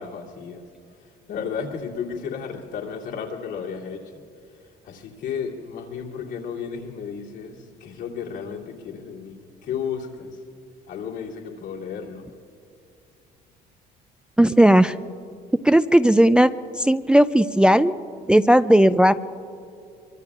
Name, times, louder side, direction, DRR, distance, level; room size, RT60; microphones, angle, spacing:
voice 1, 0.0-10.4 10.9-12.3, left 6 dB, 80° left, -3 dB, 2.8 m, -34 dB
voice 2, 14.4-14.9 15.6-16.5 16.8-17.9 18.3-19.1, right 1 dB, 5° right, 11 dB, 0.3 m, -16 dB
24.5 x 24.0 x 2.5 m, 2.4 s
cardioid pair, 110°, 17 cm